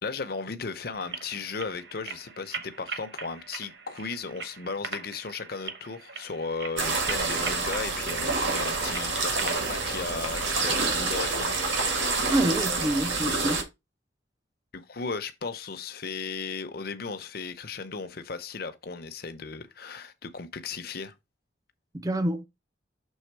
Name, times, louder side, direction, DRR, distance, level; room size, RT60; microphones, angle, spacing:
voice 1, 0.0-11.7 14.7-21.1, left 4 dB, 55° left, 0.7 m, -36 dB
sound 1, 0.9-10.1, right 5 dB, 60° right, 1.0 m, -41 dB
sound 2, 6.8-13.6, right 3 dB, 85° right, 1.8 m, -28 dB
voice 2, 12.3-13.6 21.9-22.5, right 1 dB, 20° right, 0.4 m, -27 dB
6.4 x 3.6 x 4.6 m
head